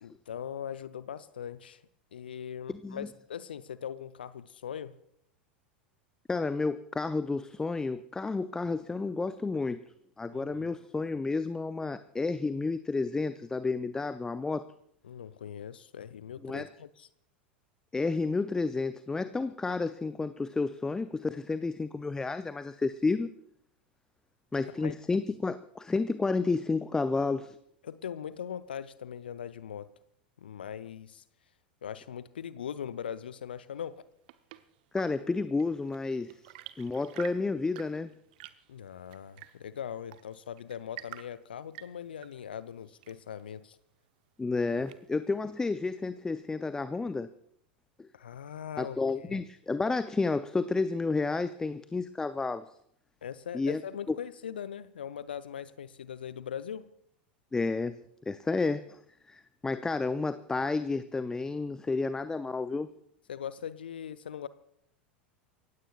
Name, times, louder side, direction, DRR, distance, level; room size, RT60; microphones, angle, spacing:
voice 1, 0.0-1.8 2.1-5.0 10.3-10.7 15.0-17.1 24.8-24.9 27.8-29.9 30.4-31.2 31.8-34.0 38.7-43.8 48.1-49.0 49.3-49.4 53.2-56.8 63.3-64.5, left 8 dB, 70° left, 15 dB, 0.6 m, -40 dB
voice 2, 2.7-3.1 6.3-9.8 10.2-14.6 16.4-16.7 17.9-23.3 24.5-27.6 34.9-36.3 36.8-38.1 44.4-47.3 48.0-48.1 48.8-52.7 53.5-53.8 54.1-54.2 57.5-58.0 58.3-59.0 59.3-62.9, left 3 dB, 10° left, 13 dB, 0.5 m, -31 dB
Chirp tweet / Engine / Tap, 33.8-45.4, right 15 dB, 55° right, 0.8 m, -51 dB
28.5 x 16.0 x 2.4 m, 0.72 s
figure-of-eight pair, 85°, 5 cm